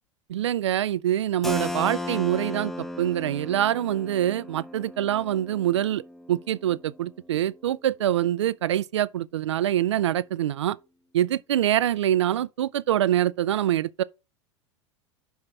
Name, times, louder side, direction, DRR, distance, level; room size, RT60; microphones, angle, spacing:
voice 1, 0.3-6.0 6.3-10.8 11.1-14.0, right 12 dB, 70° right, 0.4 m, -25 dB
Keyboard (musical), 1.4-7.0, left 1 dB, ahead, 0.7 m, -35 dB
5.7 x 5.5 x 5.7 m
figure-of-eight pair, 80°, 16 cm